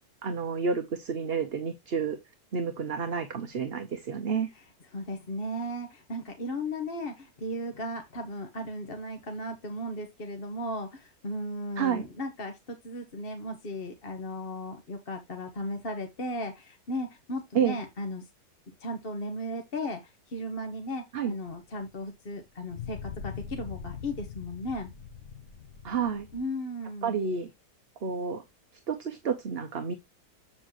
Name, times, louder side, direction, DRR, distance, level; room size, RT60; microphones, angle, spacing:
voice 1, 0.2-2.2 2.5-4.5 11.8-12.1 17.5-17.8 21.1-21.3 25.8-26.3 27.0-27.5 28.0-28.4 28.9-29.9, right 6 dB, 45° right, 1.0 m, -30 dB
voice 2, 4.9-18.3 18.8-24.9 26.3-27.2, left 1 dB, 40° left, 1.4 m, -36 dB
sound 1, 21.5-21.6 22.7-26.4, left 7 dB, 60° left, 1.4 m, -42 dB
7.9 x 7.3 x 2.9 m
omnidirectional pair, 1.7 m